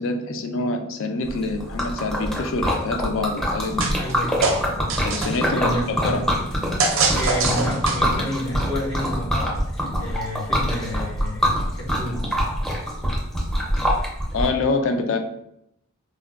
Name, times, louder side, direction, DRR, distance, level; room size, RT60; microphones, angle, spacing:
voice 1, 0.0-3.9 5.0-6.3 9.9-10.1 14.3-15.2, left 3 dB, 65° left, 6 dB, 0.4 m, -26 dB
Liquid, 1.3-14.5, equal, ahead, 0.5 m, -25 dB
sound 1, 3.8-4.1 4.4-5.5 6.8-8.2, right 4 dB, 60° right, 0.5 m, -23 dB
voice 2, 3.9-5.0 5.5-6.4 6.9-12.4, equal, 80° left, -5 dB, 1.2 m, -30 dB
4.1 x 2.1 x 2.3 m, 0.76 s
head